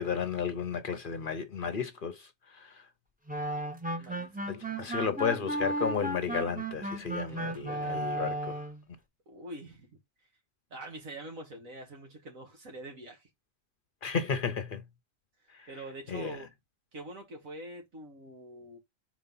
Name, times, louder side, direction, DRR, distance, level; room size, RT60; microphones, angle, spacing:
voice 1, 0.0-2.8 4.5-8.6 14.0-14.8 15.5-15.7 16.1-16.4, left 6 dB, 50° left, 0.7 m, -33 dB
sound 1, 3.3-8.8, right 1 dB, 10° right, 0.5 m, -34 dB
voice 2, 4.0-5.1 7.3-8.1 9.3-10.0 10.7-13.3 15.7-16.5 16.9-18.8, right 1 dB, 85° right, 2.6 m, -45 dB
4.4 x 4.1 x 5.5 m
omnidirectional pair, 1.4 m